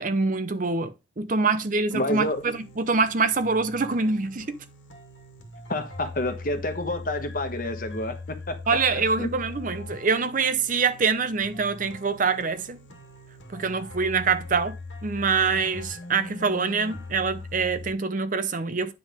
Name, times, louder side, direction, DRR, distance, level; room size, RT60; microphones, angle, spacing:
voice 1, 0.0-4.6 8.7-12.8 13.5-18.9, right 4 dB, 40° right, 0.6 m, -25 dB
sound 1, 1.9-17.9, left 2 dB, 75° left, 2.0 m, -41 dB
voice 2, 1.9-2.4 5.7-8.6 8.9-9.3, left 1 dB, 45° left, 1.2 m, -29 dB
9.3 x 3.6 x 5.0 m
head